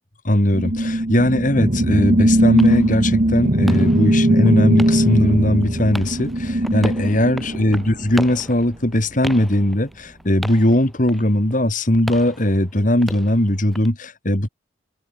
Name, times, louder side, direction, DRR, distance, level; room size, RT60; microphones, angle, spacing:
voice 1, 0.2-14.5, left 1 dB, 45° left, 3.0 m, -19 dB
sound 1, 0.5-8.3, right 1 dB, 45° right, 1.9 m, -19 dB
sound 2, 2.2-13.9, equal, ahead, 6.8 m, -36 dB
open air
head